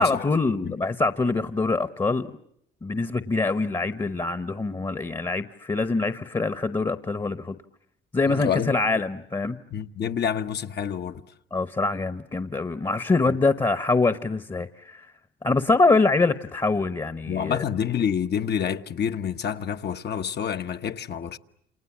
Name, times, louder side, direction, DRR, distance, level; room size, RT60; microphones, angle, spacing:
voice 1, 0.0-2.3 2.8-7.6 8.1-9.6 11.5-15.1 15.4-17.6, left 3 dB, 20° left, 1.1 m, -24 dB
voice 2, 8.3-9.0 9.7-11.3 13.3-13.4 17.3-21.4, left 8 dB, 55° left, 1.2 m, -28 dB
29.5 x 27.5 x 7.3 m
cardioid pair, 90°, 20 cm